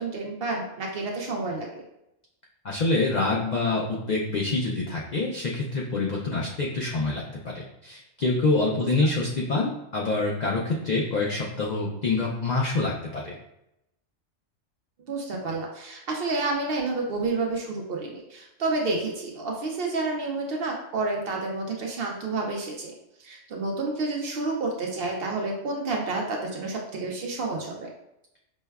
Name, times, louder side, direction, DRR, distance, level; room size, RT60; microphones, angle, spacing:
voice 1, 0.0-1.8 8.8-8.9 15.1-22.9 23.2-27.9, right 3 dB, 60° right, 0 dB, 0.6 m, -30 dB
voice 2, 2.6-13.3, left 3 dB, 80° left, -3 dB, 0.4 m, -26 dB
5.2 x 2.1 x 2.2 m, 0.86 s
omnidirectional pair, 1.3 m